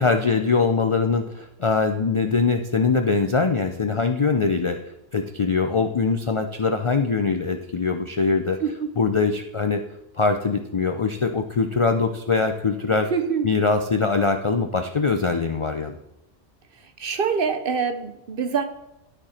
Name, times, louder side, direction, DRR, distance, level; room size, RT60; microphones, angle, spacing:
voice 1, 0.0-4.8 5.1-8.6 9.0-9.8 10.1-13.1 13.4-16.0, left 4 dB, 55° left, 6 dB, 0.3 m, -22 dB
voice 2, 13.1-13.5 17.0-18.6, right 6 dB, 55° right, 8 dB, 0.8 m, -25 dB
12.0 x 4.4 x 4.3 m, 0.87 s
omnidirectional pair, 1.2 m